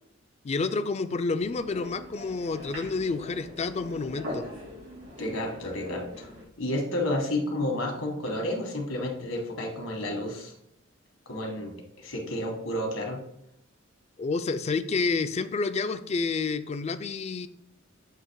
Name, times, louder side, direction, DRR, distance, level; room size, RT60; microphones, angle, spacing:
voice 1, 0.4-4.5 14.2-17.5, left 4 dB, 30° left, 12 dB, 0.3 m, -29 dB
sound 1, 1.4-6.5, left 1 dB, 85° right, 2.6 m, -41 dB
voice 2, 5.2-6.3 6.6-10.5 11.2-13.2, left 1 dB, 80° left, 1 dB, 1.5 m, -31 dB
7.6 x 2.9 x 4.6 m, 0.79 s
head